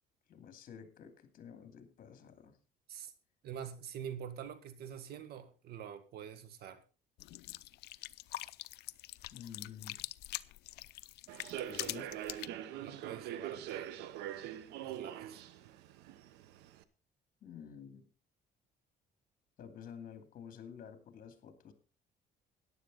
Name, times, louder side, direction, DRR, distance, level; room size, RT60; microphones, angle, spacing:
voice 1, 0.3-2.6 9.3-10.0 11.7-12.1 17.4-18.1 19.6-21.7, left 7 dB, 55° left, 8 dB, 2.6 m, -50 dB
voice 2, 3.4-6.8 11.8-12.1 12.8-13.9 14.8-15.4, right 8 dB, 70° right, 12 dB, 1.7 m, -46 dB
sound 1, 7.2-12.5, left 17 dB, 75° left, 0.6 m, -44 dB
Human voice / Subway metro underground, 11.3-16.8, right 11 dB, 90° right, 1.0 m, -43 dB
14.0 x 10.5 x 4.0 m, 0.34 s
cardioid pair, 110°, 17 cm